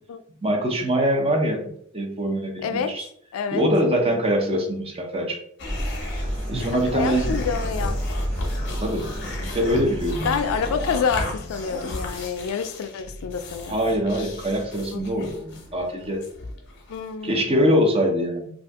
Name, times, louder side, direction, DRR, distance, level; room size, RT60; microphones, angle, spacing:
voice 1, 0.4-3.0 3.5-5.4 6.5-7.4 8.8-9.1 9.4-10.3 13.7-16.2 17.2-18.5, equal, 30° right, 2 dB, 0.6 m, -23 dB
voice 2, 2.6-3.0 3.3-3.7 6.7-8.0 10.2-13.9 14.9-15.0 16.9-17.8, left 6 dB, 80° left, 10 dB, 0.3 m, -28 dB
sound 1, 5.6-17.3, left 2 dB, 55° left, 0.7 m, -35 dB
sound 2, 5.7-11.3, equal, 65° right, 1.1 m, -30 dB
2.6 x 2.5 x 3.4 m, 0.66 s
head